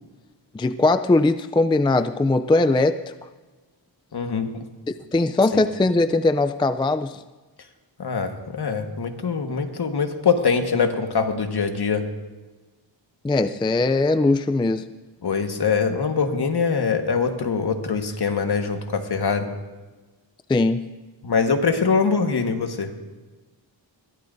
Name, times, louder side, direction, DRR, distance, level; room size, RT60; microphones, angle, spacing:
voice 1, 0.5-3.0 5.1-7.2 13.2-14.8 20.5-20.8, left 2 dB, 10° left, 10 dB, 0.3 m, -20 dB
voice 2, 4.1-4.5 8.0-12.0 15.2-19.5 21.2-22.9, left 5 dB, 60° left, 5 dB, 1.5 m, -23 dB
21.5 x 15.5 x 2.6 m, 1.2 s
wide cardioid pair, 100°, 45 cm